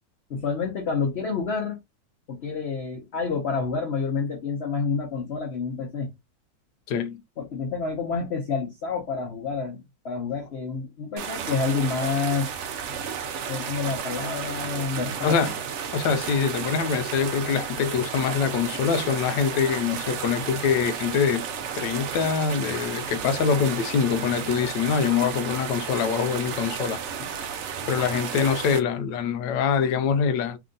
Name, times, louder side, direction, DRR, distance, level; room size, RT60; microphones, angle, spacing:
voice 1, 0.3-1.8 2.3-6.1 7.4-12.5 12.9-13.0 13.5-15.5 27.2-27.3, left 5 dB, 50° left, 0.8 m, -28 dB
voice 2, 6.9-7.2 15.2-15.5 15.9-21.4 21.7-27.0 27.9-30.6, left 6 dB, 80° left, 1.2 m, -24 dB
sound 1, 11.2-28.8, right 7 dB, 85° right, 0.6 m, -33 dB
3.4 x 2.5 x 3.7 m
omnidirectional pair, 2.0 m